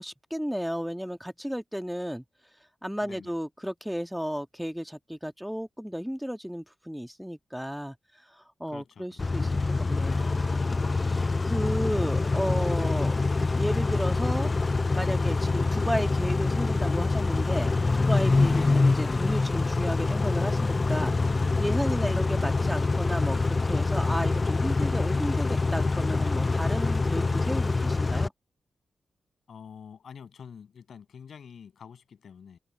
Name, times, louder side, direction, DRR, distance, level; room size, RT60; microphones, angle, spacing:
voice 1, 0.0-2.2 2.8-8.0 8.4-10.6 10.9-13.1 13.6-14.5 14.9-28.3, equal, ahead, 2.4 m, -33 dB
voice 2, 3.0-3.3 8.7-9.2 18.4-18.8 21.9-22.2 29.5-32.6, left 7 dB, 70° left, 7.5 m, -47 dB
Car / Idling / Accelerating revving vroom, 9.2-28.3, left 3 dB, 40° left, 0.4 m, -25 dB
supercardioid pair, 40°, 0 cm